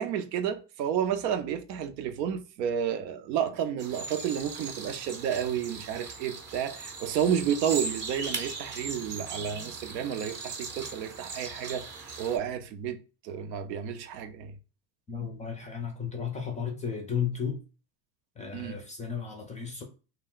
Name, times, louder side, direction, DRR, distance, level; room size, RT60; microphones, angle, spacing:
voice 1, 0.0-11.9 12.2-14.5 18.5-18.8, right 8 dB, 80° right, 0.7 m, -31 dB
sound 1, 3.8-12.4, right 4 dB, 25° right, 0.6 m, -39 dB
voice 2, 15.1-17.6 18.4-19.8, left 7 dB, 15° left, 0.4 m, -34 dB
2.2 x 2.1 x 3.7 m
supercardioid pair, 110°, 50 cm